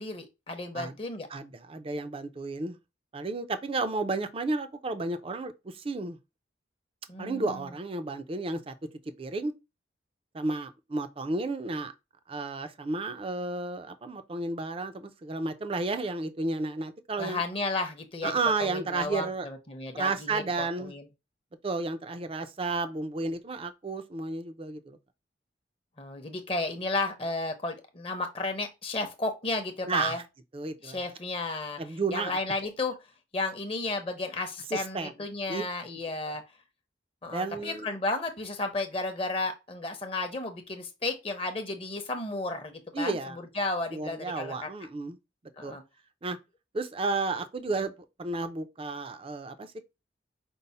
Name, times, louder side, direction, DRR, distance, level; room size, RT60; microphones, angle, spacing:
voice 1, 0.0-1.3 7.1-7.7 17.2-18.3 18.6-21.1 26.0-30.2 30.8-31.8 32.1-32.9 33.3-36.4 37.2-44.7 45.5-45.8, left 2 dB, 30° left, 0.7 m, -33 dB
voice 2, 1.3-2.8 3.1-6.2 7.2-8.7 9.2-9.5 10.3-11.9 12.3-17.4 18.2-19.5 19.9-20.9 21.6-25.0 29.9-30.2 30.5-31.0 31.8-32.4 34.7-35.1 35.5-35.6 36.2-36.4 37.3-37.9 42.9-43.4 43.9-45.2 45.6-45.8 46.2-46.4 46.7-47.9 48.2-49.8, right 3 dB, 30° right, 0.4 m, -32 dB
5.3 x 2.1 x 4.1 m
head